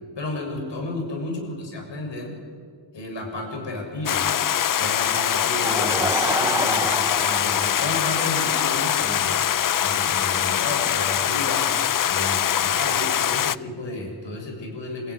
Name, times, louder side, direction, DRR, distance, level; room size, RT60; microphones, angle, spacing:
voice 1, 0.2-2.4 2.9-4.3 4.8-15.1, left 2 dB, 65° left, 2 dB, 7.0 m, -32 dB
Stream, 4.1-13.6, left 10 dB, 45° left, 0.5 m, -23 dB
Laughter / Crowd, 5.4-8.9, right 1 dB, 10° right, 0.8 m, -29 dB
28.0 x 16.0 x 9.8 m, 2.1 s
wide cardioid pair, 100°, 46 cm